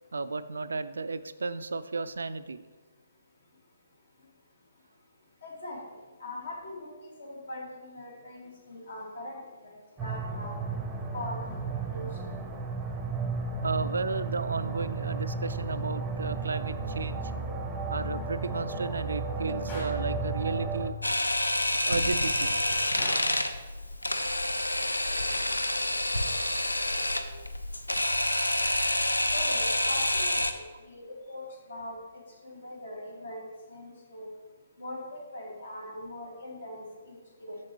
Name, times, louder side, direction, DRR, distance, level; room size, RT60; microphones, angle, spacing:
voice 1, 0.1-2.6 13.6-17.2 17.9-21.2 21.8-22.5 23.0-23.2 26.6-27.5 28.5-28.7 37.5-37.6, right 3 dB, 70° right, 13 dB, 0.3 m, -34 dB
voice 2, 5.4-5.8 6.2-10.6 11.1-12.1 29.3-34.3 34.8-37.6, left 1 dB, 65° left, -1 dB, 2.0 m, -41 dB
sound 1, 10.0-20.9, right 4 dB, 15° right, 0.7 m, -33 dB
Gunshot gunfire, 19.7-20.1 23.0-23.4, left 1 dB, 30° left, 1.8 m, -40 dB
Camera, 21.0-30.5, left 1 dB, 85° left, 0.5 m, -28 dB
7.3 x 6.3 x 2.9 m, 1.3 s
figure-of-eight pair, 135°, 0 cm